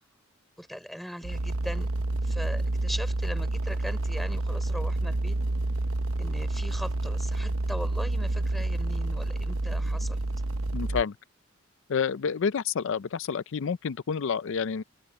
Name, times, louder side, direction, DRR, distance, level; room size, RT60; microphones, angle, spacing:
voice 1, 0.6-1.9 2.2-5.4 6.2-10.2, equal, ahead, 4.2 m, -39 dB
sound 1, 1.2-11.0, right 2 dB, 85° right, 0.9 m, -29 dB
voice 2, 10.7-11.2 11.9-14.8, left 6 dB, 65° left, 0.4 m, -29 dB
open air
head